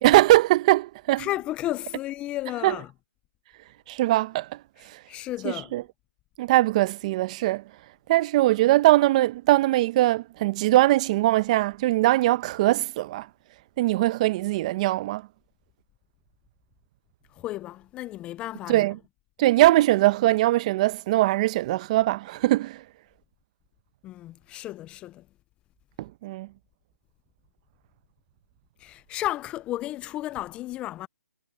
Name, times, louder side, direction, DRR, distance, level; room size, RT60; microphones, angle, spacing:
voice 1, 0.0-1.3 2.6-2.7 3.9-4.5 5.4-5.8 6.4-7.6 8.1-13.3 13.8-15.2 18.7-19.0 19.4-22.8 26.0-26.5, right 17 dB, 25° right, 0.9 m, -21 dB
voice 2, 1.2-2.9 4.8-5.7 17.4-18.9 24.0-25.2 28.8-31.1, left 15 dB, 15° left, 0.5 m, -33 dB
hypercardioid pair, 155°, 8 cm